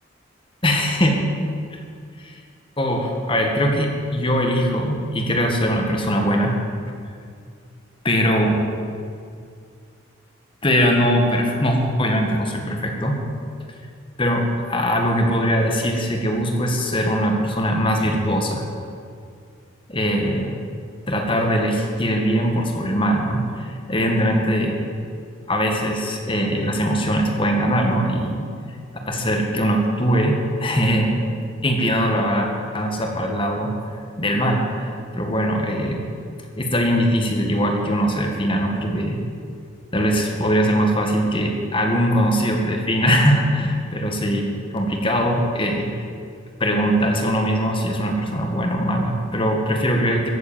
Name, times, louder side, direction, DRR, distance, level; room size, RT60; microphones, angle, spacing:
voice 1, 0.6-1.2 1.7-1.8 2.2-2.4 2.8-6.6 6.9-7.0 8.0-8.6 10.6-13.2 14.2-18.6 19.9-20.5 21.1-24.8 25.5-28.5 29.1-31.1 31.6-32.5 32.7-33.7 34.2-36.0 36.6-39.2 39.9-44.5 44.7-46.0 46.6-50.3, equal, 25° left, 2 dB, 1.9 m, -21 dB
15.0 x 8.4 x 9.1 m, 2.3 s
head